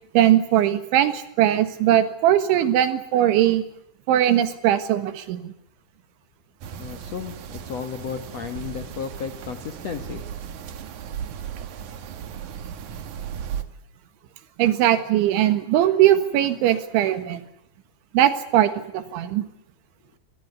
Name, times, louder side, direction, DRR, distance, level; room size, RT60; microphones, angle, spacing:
voice 1, 0.1-3.6 4.1-5.5 14.6-17.4 18.1-19.5, right 12 dB, 80° right, 11 dB, 4.0 m, -20 dB
sound 1, 6.6-13.6, right 8 dB, 60° right, 2.1 m, -36 dB
voice 2, 6.7-10.2, left 7 dB, 75° left, 6 dB, 1.5 m, -33 dB
25.5 x 18.5 x 9.5 m, 0.73 s
omnidirectional pair, 5.3 m